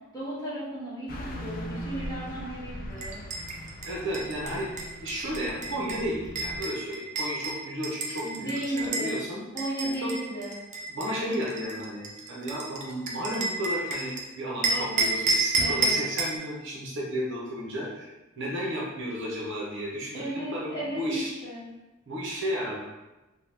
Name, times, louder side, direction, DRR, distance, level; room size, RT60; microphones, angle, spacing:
voice 1, 0.1-3.2 8.2-9.2 9.5-10.5 14.7-15.2 15.6-16.0 20.1-21.7, right 1 dB, 15° left, -10 dB, 1.0 m, -35 dB
Car passing by / Truck, 1.1-6.6, equal, 40° left, 0.4 m, -40 dB
sound 1, 3.0-9.1 9.6-14.2 14.6-16.4, right 3 dB, 35° right, 0.4 m, -30 dB
voice 2, 3.8-8.5 8.8-9.4 10.0-10.1 10.9-21.3 22.1-22.8, equal, 60° right, -4 dB, 0.8 m, -33 dB
2.8 x 2.2 x 3.4 m, 1.1 s
head